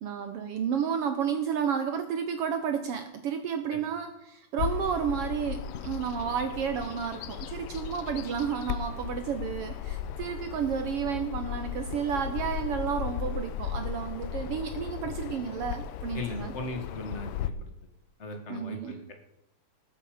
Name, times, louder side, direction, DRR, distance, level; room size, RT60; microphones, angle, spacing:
voice 1, 0.0-16.5 18.5-19.0, right 7 dB, 80° right, 7 dB, 1.3 m, -31 dB
Bird vocalization bird call bird song, 4.6-17.5, left 9 dB, 90° left, 2.3 m, -36 dB
voice 2, 16.1-17.7 18.2-19.1, left 2 dB, 35° left, 4 dB, 1.1 m, -38 dB
19.0 x 8.4 x 5.0 m, 0.85 s
omnidirectional pair, 3.7 m